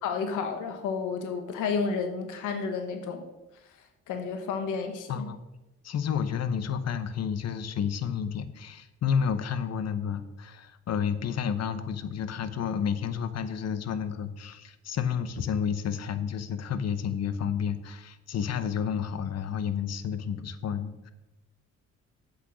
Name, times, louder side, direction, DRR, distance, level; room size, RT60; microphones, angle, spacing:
voice 1, 0.0-3.3 4.1-5.3, left 5 dB, 85° left, 6 dB, 1.2 m, -31 dB
voice 2, 5.8-21.1, left 7 dB, 55° left, 12 dB, 0.9 m, -30 dB
8.2 x 6.4 x 6.2 m, 0.99 s
cardioid pair, 90°, 30 cm